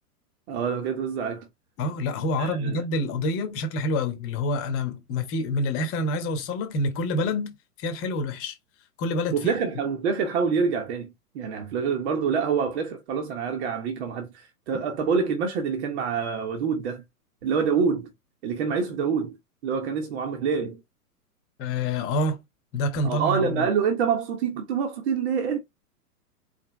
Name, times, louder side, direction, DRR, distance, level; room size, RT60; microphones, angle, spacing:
voice 1, 0.5-1.5 2.4-2.8 9.3-17.0 17.4-18.1 18.4-19.4 19.6-20.8 23.0-25.6, right 6 dB, 45° right, 1.3 m, -26 dB
voice 2, 1.8-8.6 9.0-9.6 21.6-22.4 22.7-23.7, left 1 dB, 25° left, 1.2 m, -27 dB
4.5 x 3.4 x 3.1 m
figure-of-eight pair, 110°, 47 cm